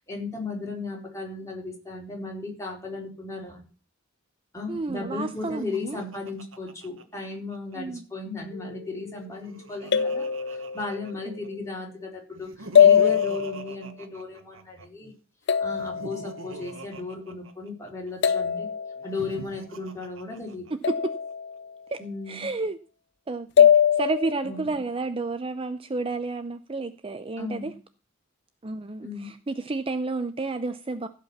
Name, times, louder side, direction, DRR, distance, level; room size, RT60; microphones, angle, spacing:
voice 1, 0.0-3.6 4.5-15.1 15.6-18.7 19.0-20.7 22.0-22.4 24.4-24.7 27.4-27.7 29.0-29.3, left 3 dB, 15° left, 4.3 m, -36 dB
voice 2, 4.7-6.0 7.8-8.0 11.3-11.4 20.9-21.1 21.9-22.0 22.3-22.8 23.3-27.7 28.6-31.1, right 3 dB, 25° right, 0.5 m, -31 dB
Laughter, 5.2-7.8 9.1-11.5 12.3-14.9 15.7-18.1 19.0-20.9, right 1 dB, 75° right, 1.4 m, -42 dB
sound 1, 8.5-9.0 9.9-11.2 12.7-13.8 15.5-16.5 18.2-19.3 20.8-21.7 23.6-24.6, left 8 dB, 55° left, 0.5 m, -22 dB
16.0 x 5.3 x 7.2 m
head